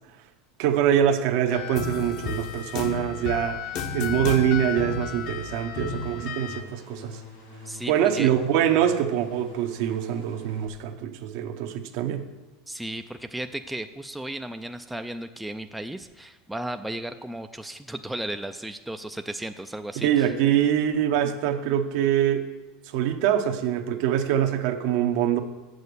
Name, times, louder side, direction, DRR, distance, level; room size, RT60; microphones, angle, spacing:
voice 1, 0.6-3.6 3.9-7.2 7.9-12.2 20.0-22.4 22.9-25.4, right 10 dB, 65° right, 6 dB, 0.8 m, -24 dB
sound 1, 1.5-6.6, left 6 dB, 55° left, 1.0 m, -32 dB
sound 2, 4.9-10.7, left 2 dB, 75° left, 3.4 m, -45 dB
voice 2, 7.6-8.3 12.7-20.3, right 1 dB, 5° right, 7 dB, 0.4 m, -35 dB
7.0 x 6.4 x 6.8 m, 1.2 s
supercardioid pair, 125°, 0 cm